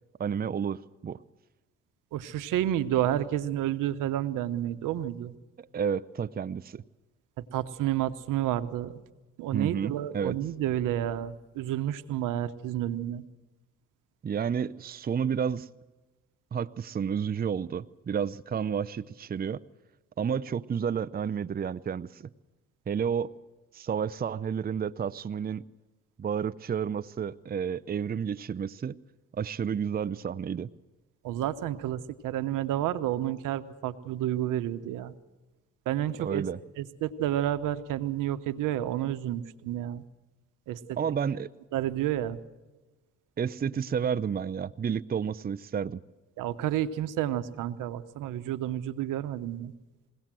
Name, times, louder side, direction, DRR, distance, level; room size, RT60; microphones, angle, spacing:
voice 1, 0.2-1.2 5.6-6.8 9.5-10.4 14.2-15.7 16.5-19.6 20.2-22.3 22.9-23.3 23.7-25.6 26.2-29.0 29.3-30.7 36.2-36.6 41.0-41.5 43.4-46.0, right 7 dB, 30° right, 14 dB, 0.6 m, -31 dB
voice 2, 2.1-5.3 7.5-9.0 9.4-13.2 31.2-35.1 35.9-36.4 36.8-40.0 40.7-41.0 41.7-42.4 46.4-49.7, right 12 dB, 80° right, 12 dB, 1.0 m, -30 dB
22.0 x 17.5 x 7.6 m, 1.2 s
supercardioid pair, 60°, 31 cm